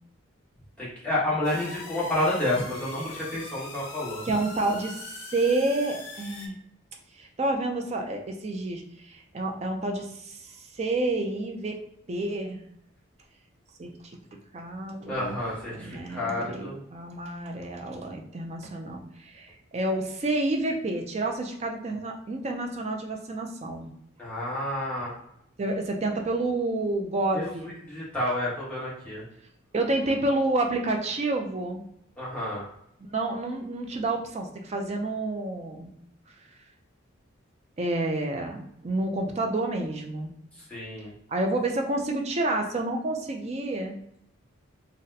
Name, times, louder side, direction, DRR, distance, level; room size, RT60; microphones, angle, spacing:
voice 1, 0.8-4.2 15.1-16.8 24.2-25.2 27.3-27.5 27.9-29.2 32.2-32.7 40.7-41.1, left 1 dB, 5° left, -8 dB, 1.1 m, -30 dB
sound 1, 1.4-6.5, left 3 dB, 80° left, 0.7 m, -42 dB
voice 2, 4.2-6.6 7.2-11.8 12.1-12.6 13.8-13.9 14.5-15.4 15.7-23.9 25.6-27.7 29.7-31.8 33.1-35.9 37.8-40.3 41.3-44.0, right 2 dB, 30° right, 3 dB, 0.4 m, -29 dB
4.0 x 2.1 x 2.6 m, 0.76 s
head